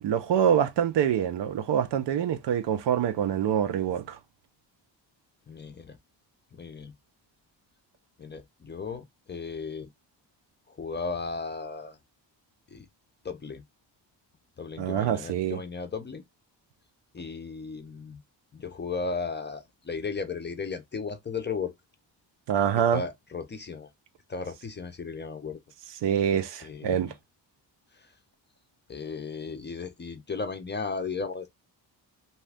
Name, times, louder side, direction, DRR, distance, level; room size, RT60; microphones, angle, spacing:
voice 1, 0.0-4.2 14.8-15.6 22.5-23.0 26.0-27.1, right 9 dB, 70° right, 0.6 m, -25 dB
voice 2, 5.5-6.0 6.5-6.9 8.2-9.9 10.7-12.0 12.7-12.9 13.2-13.6 14.6-16.2 17.1-18.2 18.5-21.7 22.9-23.9 24.3-25.6 26.6-27.1 28.9-31.5, left 4 dB, 25° left, 0.5 m, -35 dB
2.8 x 2.3 x 3.3 m
cardioid pair, 105°, 44 cm